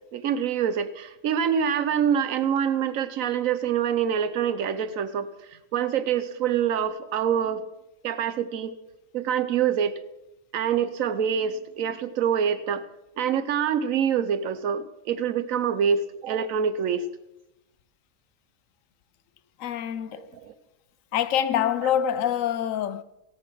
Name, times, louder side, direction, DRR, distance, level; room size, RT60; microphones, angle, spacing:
voice 1, 0.1-5.3 5.7-7.6 8.0-8.7 9.1-10.0 10.5-12.8 13.2-17.1 20.3-20.5 21.8-21.9, right 8 dB, 85° right, 1.2 m, -25 dB
voice 2, 19.6-20.4 21.1-23.0, left 10 dB, 80° left, 1.0 m, -25 dB
17.0 x 6.9 x 6.2 m
omnidirectional pair, 1.4 m